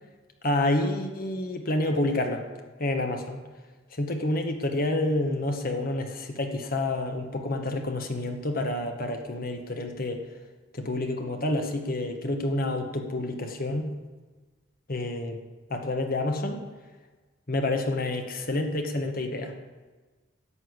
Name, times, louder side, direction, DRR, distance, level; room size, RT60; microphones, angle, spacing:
voice 1, 0.4-2.4 2.8-3.4 3.9-10.2 10.7-13.9 14.9-15.4 15.7-16.6 17.5-19.5, left 2 dB, 45° left, 5 dB, 1.2 m, -28 dB
11.0 x 6.6 x 8.0 m, 1.3 s
head